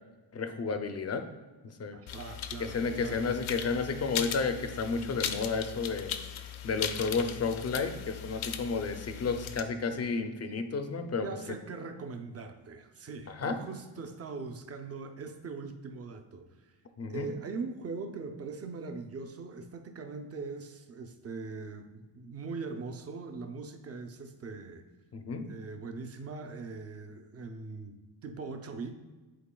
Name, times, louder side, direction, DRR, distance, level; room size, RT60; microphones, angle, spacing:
voice 1, 0.3-1.3 1.8-2.0 2.6-6.2 6.6-11.3 13.4-13.6 17.0-17.3 25.1-25.5, left 4 dB, 35° left, 7 dB, 0.4 m, -32 dB
voice 2, 1.9-3.3 11.2-16.4 17.1-24.8 25.4-28.9, right 4 dB, 30° right, 5 dB, 0.4 m, -41 dB
sound 1, 2.1-9.6, left 9 dB, 75° left, 0.6 m, -38 dB
10.5 x 4.4 x 2.2 m, 1.2 s
wide cardioid pair, 170°, 49 cm